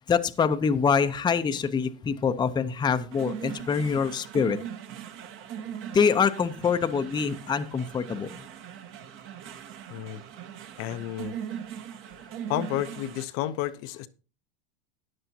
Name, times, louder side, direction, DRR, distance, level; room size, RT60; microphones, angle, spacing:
voice 1, 0.1-4.6 5.9-8.3, left 6 dB, 15° left, 0.7 m, -25 dB
sound 1, 3.1-13.3, right 9 dB, 40° right, 1.0 m, -40 dB
voice 2, 9.9-10.2 10.8-11.3 12.5-14.1, left 13 dB, 45° left, 0.7 m, -31 dB
14.0 x 9.8 x 2.8 m
supercardioid pair, 120°, 33 cm